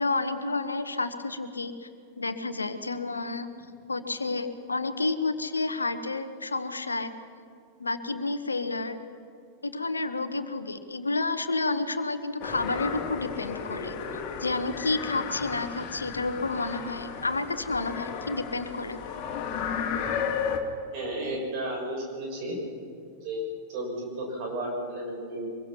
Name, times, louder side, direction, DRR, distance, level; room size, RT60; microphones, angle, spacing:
voice 1, 0.0-1.9 2.2-3.5 3.9-7.1 7.8-9.0 9.6-14.0 14.4-19.0, left 3 dB, 80° left, 10 dB, 1.2 m, -30 dB
sound 1, 12.4-20.6, left 7 dB, 40° left, 2.6 m, -34 dB
voice 2, 20.9-22.6 23.2-25.5, right 1 dB, 45° right, 0 dB, 6.6 m, -33 dB
24.0 x 22.0 x 5.8 m, 2.3 s
figure-of-eight pair, 90°, 0 cm